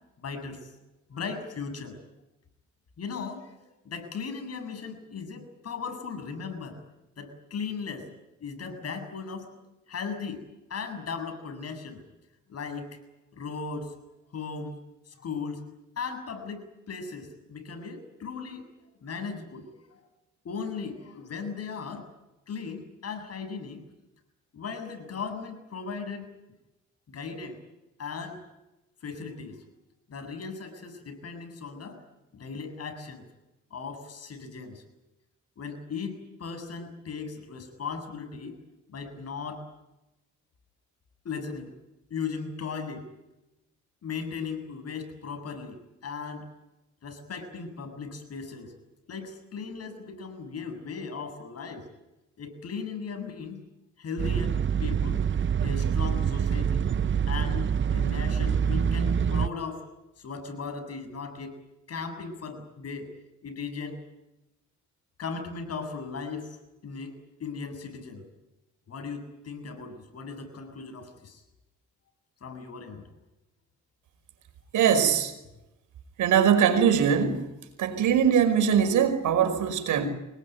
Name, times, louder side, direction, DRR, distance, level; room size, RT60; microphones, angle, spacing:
voice 1, 0.2-0.7 1.1-2.0 3.0-3.5 3.8-6.8 7.2-8.1 8.4-9.5 9.9-10.4 10.7-12.0 12.5-13.0 13.3-13.9 14.3-14.8 15.1-15.6 16.0-18.7 19.0-20.0 20.4-22.1 22.5-23.8 24.5-26.3 27.1-27.6 28.0-28.4 29.0-29.6 30.1-32.0 32.3-33.2 33.7-34.8 35.6-38.6 38.9-39.6 41.2-41.7 42.1-43.1 44.0-46.5 47.0-48.7 49.1-51.9 52.4-53.6 54.0-55.2 55.6-56.9 57.3-59.8 60.2-61.6 61.9-63.1 63.4-64.0 65.2-66.6 66.8-68.2 68.9-71.4 72.4-73.1, left 5 dB, 55° left, 7 dB, 7.4 m, -37 dB
sound 1, 54.2-59.5, right 7 dB, 40° right, 0.9 m, -26 dB
voice 2, 74.7-75.3 76.2-77.5 77.8-80.1, right 8 dB, 80° right, 8 dB, 5.5 m, -22 dB
25.5 x 21.0 x 9.5 m, 0.94 s
cardioid pair, 90°, 30 cm